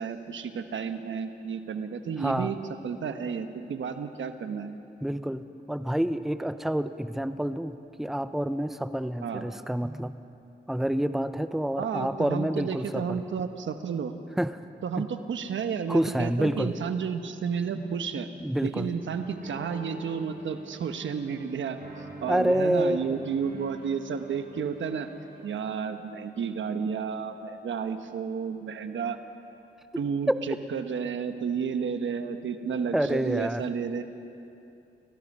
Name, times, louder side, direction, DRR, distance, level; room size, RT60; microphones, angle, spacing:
voice 1, 0.0-2.5 2.8-4.7 9.2-9.4 11.8-14.2 14.8-18.3 18.6-21.8 22.2-25.1 25.4-29.2 30.0-34.0, right 6 dB, 80° right, 8 dB, 1.2 m, -32 dB
voice 2, 2.2-2.5 5.0-10.2 10.7-13.2 14.4-14.6 15.0-15.1 15.9-16.7 18.4-18.9 22.3-23.2 30.3-30.4 32.9-33.7, right 1 dB, ahead, 11 dB, 0.8 m, -28 dB
sound 1, 18.9-25.6, right 2 dB, 50° right, 6.3 m, -47 dB
28.5 x 16.5 x 5.5 m, 2.7 s
cardioid pair, 50°, 20 cm